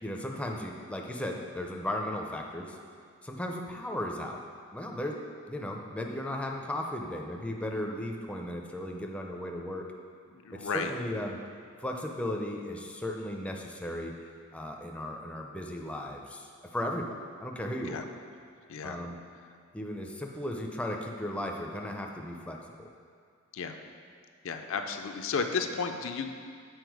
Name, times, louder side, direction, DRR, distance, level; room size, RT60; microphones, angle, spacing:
voice 1, 0.0-2.8 3.2-4.4 4.7-5.2 5.5-9.9 10.5-11.4 11.8-14.1 14.5-17.1 17.4-18.1 18.8-19.2 19.7-22.9, left 1 dB, 5° left, 1 dB, 0.4 m, -36 dB
voice 2, 10.3-10.9 17.8-18.0 18.7-19.0 23.5-23.8 24.4-26.3, left 5 dB, 65° left, 5 dB, 0.4 m, -33 dB
8.0 x 4.2 x 4.6 m, 2.1 s
head